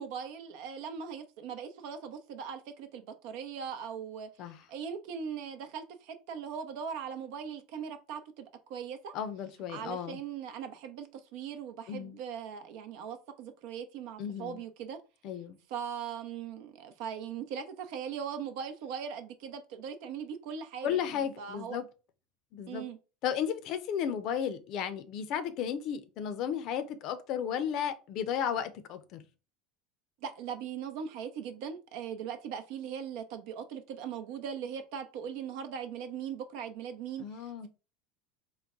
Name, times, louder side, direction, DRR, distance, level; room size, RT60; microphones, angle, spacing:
voice 1, 0.0-4.3 4.7-9.1 9.7-15.0 15.7-21.8 22.7-23.0 30.2-37.7, right 7 dB, 65° right, 0.6 m, -40 dB
voice 2, 9.1-10.2 11.9-12.2 14.2-14.6 15.2-15.6 20.8-21.8 22.5-22.8 23.2-29.2 37.2-37.7, left 8 dB, 55° left, 0.6 m, -34 dB
3.9 x 2.1 x 3.6 m
hypercardioid pair, 80°, 0 cm